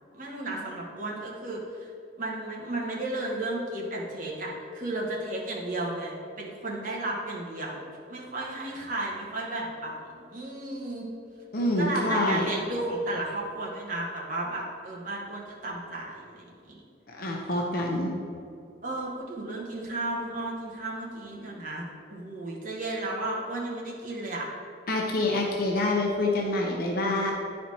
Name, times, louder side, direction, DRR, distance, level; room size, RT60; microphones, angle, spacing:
voice 1, 0.1-1.9 2.2-7.8 8.1-11.1 11.8-16.8 17.3-17.8 18.8-24.5, right 2 dB, 45° right, -3 dB, 1.4 m, -34 dB
voice 2, 11.5-12.5 17.2-18.1 24.9-27.3, left 2 dB, 50° left, -1 dB, 0.8 m, -26 dB
10.0 x 4.3 x 4.2 m, 2.5 s
head